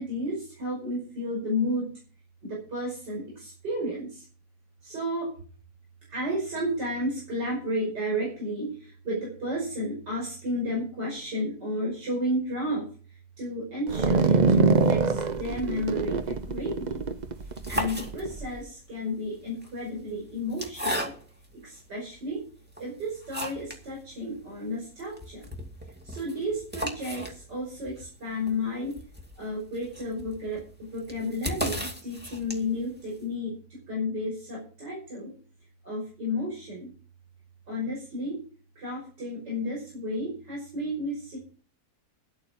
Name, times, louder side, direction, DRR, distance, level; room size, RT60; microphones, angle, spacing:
voice 1, 0.0-1.9 2.4-4.2 4.8-5.3 6.1-17.1 17.7-21.1 21.6-22.4 22.8-25.5 26.0-29.0 29.4-35.3 35.8-36.9 37.7-38.4 38.8-41.4, left 1 dB, 80° right, -3 dB, 6.1 m, -32 dB
sound 1, 13.9-18.5, right 4 dB, 50° right, 0.5 m, -24 dB
sound 2, 17.4-18.6 19.5-21.5 22.1-22.2 22.7-23.9 24.2-24.3 24.5-24.6 25.0-32.9, equal, 5° right, 2.1 m, -36 dB
11.5 x 8.6 x 7.1 m, 0.41 s
omnidirectional pair, 1.8 m